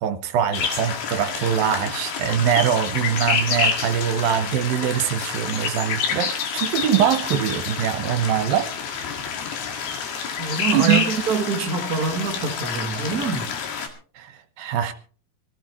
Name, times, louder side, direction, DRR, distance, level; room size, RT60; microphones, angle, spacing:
voice 1, 0.0-8.7 10.7-11.0 14.2-14.3 14.6-14.9, right 9 dB, 75° right, 2.7 m, -23 dB
sound 1, 0.5-13.9, left 6 dB, 90° left, 3.9 m, -28 dB
voice 2, 10.4-13.5, right 4 dB, 40° right, 1.4 m, -25 dB
23.0 x 14.5 x 3.0 m
omnidirectional pair, 4.3 m